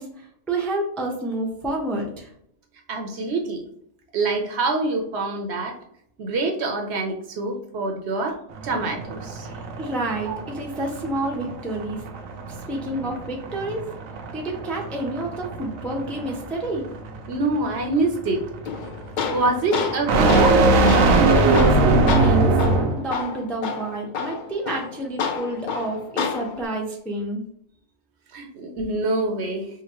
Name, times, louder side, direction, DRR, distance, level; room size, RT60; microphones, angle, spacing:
voice 1, 0.0-2.3 9.4-12.0 12.5-13.9 14.3-16.9 21.2-22.6 22.9-27.4, right 1 dB, ahead, -1 dB, 0.4 m, -29 dB
voice 2, 2.9-3.6 4.1-5.8 6.2-9.5 10.3-10.4 17.3-18.4 19.3-20.7 28.3-29.7, right 3 dB, 60° right, 3 dB, 0.9 m, -25 dB
sound 1, 8.5-23.1, right 2 dB, 85° right, 1.1 m, -22 dB
Tools, 18.7-26.7, left 6 dB, 85° left, 0.4 m, -29 dB
4.8 x 2.5 x 2.9 m, 0.68 s
omnidirectional pair, 1.4 m